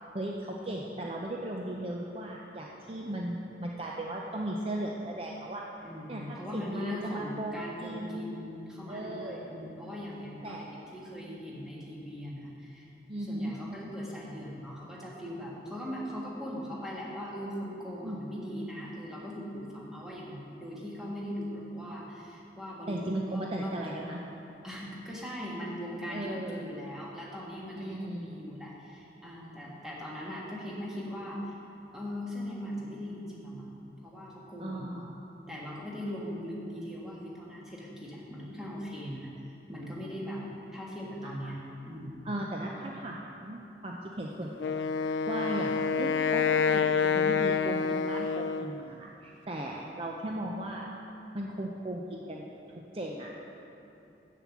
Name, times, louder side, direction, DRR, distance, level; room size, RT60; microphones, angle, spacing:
voice 1, 0.1-5.6 6.1-8.3 8.9-9.4 10.4-10.7 13.1-13.5 18.0-18.2 22.9-24.2 26.1-26.6 27.8-28.4 34.6-35.3 41.2-41.5 42.2-50.9 51.3-52.5 52.9-53.3, right 1 dB, 30° right, -1 dB, 0.6 m, -37 dB
voice 2, 5.8-12.9 13.2-24.2 24.6-31.6 31.9-35.0 35.5-39.3 39.7-40.4 40.7-41.6 41.9-42.2, equal, 5° right, -5 dB, 1.5 m, -40 dB
Wind instrument woodwind instrument, 44.6-48.8, left 6 dB, 90° left, 0.3 m, -27 dB
7.6 x 7.1 x 7.2 m, 2.8 s
head